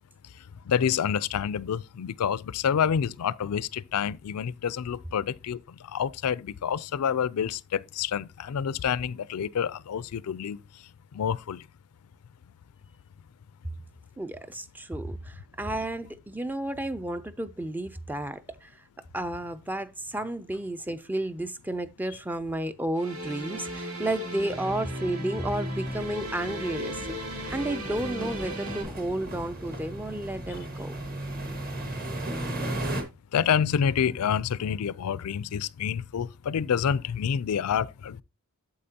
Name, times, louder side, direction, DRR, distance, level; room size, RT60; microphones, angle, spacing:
voice 1, 0.7-5.6 5.9-10.6 11.1-11.6 33.3-38.2, left 8 dB, 85° left, 0.4 m, -28 dB
voice 2, 14.2-18.8 19.1-27.1 27.5-31.0, right 1 dB, 10° right, 0.4 m, -32 dB
sound 1, 22.9-28.8, equal, 85° right, 2.4 m, -36 dB
sound 2, 25.4-33.0, right 1 dB, 40° right, 1.5 m, -36 dB
8.5 x 7.6 x 2.8 m
head